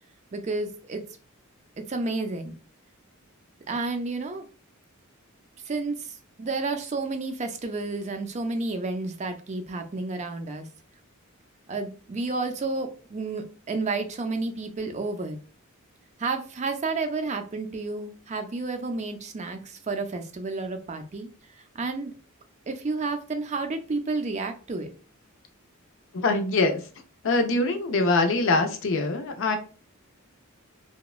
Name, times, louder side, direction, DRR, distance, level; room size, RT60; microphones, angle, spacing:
voice 1, 0.3-1.0 1.8-2.6 3.7-4.5 5.7-10.7 11.7-15.4 16.2-21.3 21.6-22.1 22.7-24.9, right 3 dB, 35° right, 7 dB, 0.4 m, -31 dB
voice 2, 26.1-26.8 27.2-29.6, left 2 dB, 60° left, 6 dB, 0.5 m, -23 dB
2.9 x 2.1 x 2.3 m, 0.37 s
head